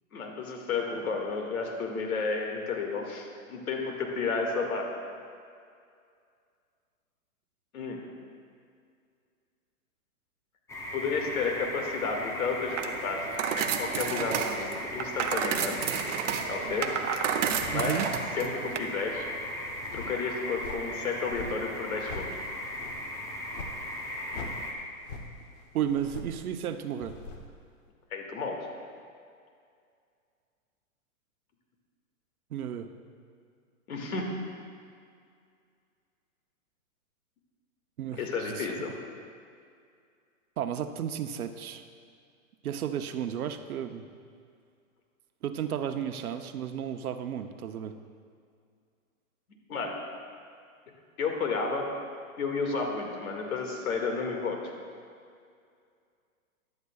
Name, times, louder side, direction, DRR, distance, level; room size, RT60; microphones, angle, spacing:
voice 1, 0.1-4.9 7.7-8.0 10.9-13.2 13.6-15.8 16.5-16.9 17.7-18.1 18.3-19.3 19.9-22.4 28.1-28.7 33.9-34.3 38.1-38.9 49.7-49.9 51.2-51.9 52.4-54.7, left 4 dB, 80° left, 1 dB, 2.1 m, -32 dB
sound 1, 10.7-24.7, left 1 dB, 5° left, 0.6 m, -37 dB
sound 2, 12.7-18.8, right 8 dB, 60° right, 0.8 m, -31 dB
sound 3, 16.2-18.4 18.7-27.8, left 2 dB, 40° left, 1.0 m, -45 dB
voice 2, 17.7-18.1 25.7-27.2 32.5-32.9 38.0-38.7 40.6-41.8 42.6-44.1 45.4-47.9, right 9 dB, 85° right, 8 dB, 0.8 m, -33 dB
14.5 x 11.0 x 2.4 m, 2.3 s
hypercardioid pair, 150°, 42 cm